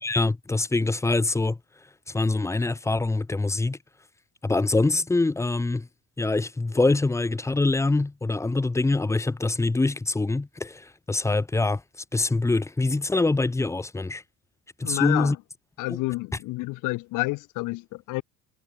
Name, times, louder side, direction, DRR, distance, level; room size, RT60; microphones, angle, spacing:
voice 1, 0.0-1.6 2.1-3.8 4.4-5.9 6.2-11.8 12.1-14.2 14.8-15.4 15.9-16.0, left 3 dB, 10° left, 2.0 m, -24 dB
voice 2, 14.8-15.4 15.8-18.2, left 22 dB, 60° left, 1.6 m, -29 dB
cardioid pair, 175°, 35 cm